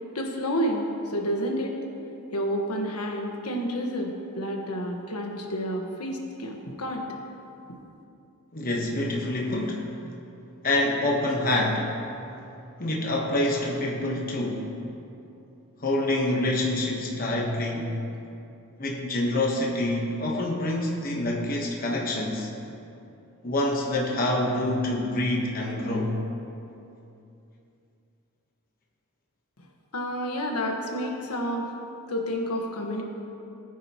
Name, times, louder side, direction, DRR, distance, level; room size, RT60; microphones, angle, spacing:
voice 1, 0.1-1.7 2.3-4.1 4.3-7.1 29.9-31.7 32.1-33.0, equal, 85° left, 1 dB, 1.4 m, -29 dB
voice 2, 8.5-9.9 10.6-11.9 12.8-14.7 15.8-17.9 18.8-22.5 23.4-26.1, left 1 dB, 40° left, -2 dB, 1.2 m, -26 dB
19.5 x 9.2 x 3.0 m, 2.7 s
head